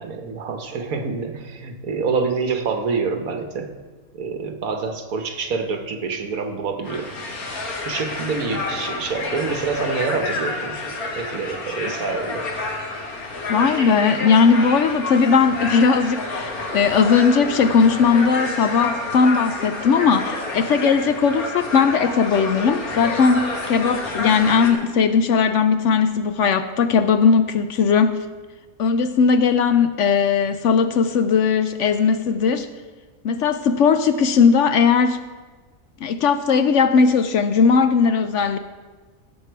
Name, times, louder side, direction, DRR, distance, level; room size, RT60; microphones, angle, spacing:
voice 1, 0.0-3.7 4.1-7.1 7.8-10.8 11.1-12.5, right 4 dB, 75° right, 6 dB, 1.6 m, -26 dB
sound 1, 6.8-24.7, left 2 dB, 85° left, 2.1 m, -29 dB
voice 2, 13.5-28.2 28.8-32.7 33.2-35.2 36.0-38.6, left 5 dB, 65° left, 10 dB, 0.8 m, -18 dB
17.5 x 7.6 x 4.6 m, 1.4 s
omnidirectional pair, 1.5 m